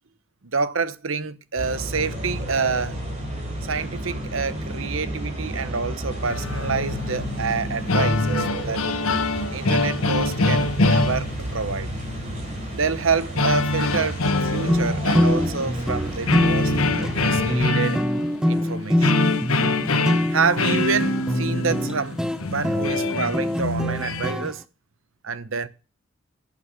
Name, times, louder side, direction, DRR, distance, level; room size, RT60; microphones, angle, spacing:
voice 1, 0.5-3.0 3.6-8.8 9.5-11.9 12.7-18.0 18.5-19.2 20.3-22.2 22.5-24.6 25.2-25.7, right 5 dB, 65° right, 1.0 m, -27 dB
sound 1, 1.6-17.7, right 1 dB, 35° right, 4.3 m, -31 dB
sound 2, 6.3-7.4 7.7-11.7 13.4-15.9 16.2-24.3, left 2 dB, 80° left, 1.3 m, -24 dB
sound 3, 14.7-24.5, left 1 dB, 5° right, 0.5 m, -25 dB
11.5 x 7.2 x 6.4 m
head